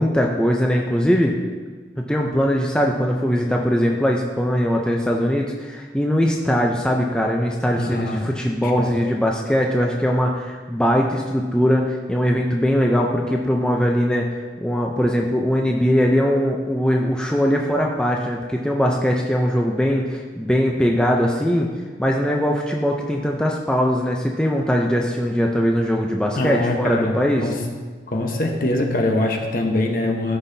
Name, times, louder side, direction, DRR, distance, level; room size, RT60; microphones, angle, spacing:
voice 1, 0.0-1.4 2.1-14.3 14.6-21.7 22.0-27.5, equal, 5° left, 0 dB, 0.5 m, -21 dB
voice 2, 7.7-8.3 8.6-8.9 26.4-27.1 27.4-27.6 28.1-30.4, left 1 dB, 50° left, 2 dB, 1.0 m, -23 dB
14.0 x 5.6 x 2.7 m, 1.5 s
head